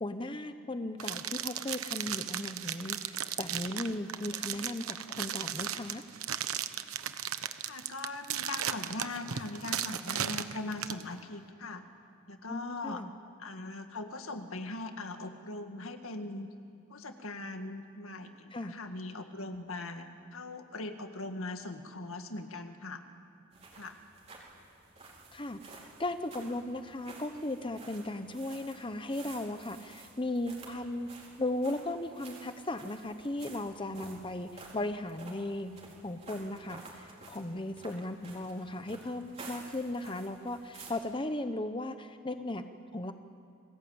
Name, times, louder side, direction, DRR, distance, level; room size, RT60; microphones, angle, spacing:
voice 1, 0.0-6.0 12.5-13.1 18.5-18.7 25.3-31.1 31.4-35.7 36.0-42.6 42.9-43.1, left 1 dB, 25° left, 9 dB, 0.8 m, -36 dB
sound 1, 1.0-11.0, right 10 dB, 80° right, 1.1 m, -36 dB
voice 2, 7.7-11.8 12.3-13.0 13.4-16.5 16.9-23.0 23.8-23.9 40.0-40.2, left 2 dB, 75° left, 6 dB, 1.9 m, -40 dB
sound 2, 23.5-40.9, right 3 dB, 30° right, 4.5 m, -52 dB
29.0 x 20.5 x 8.7 m, 2.4 s
head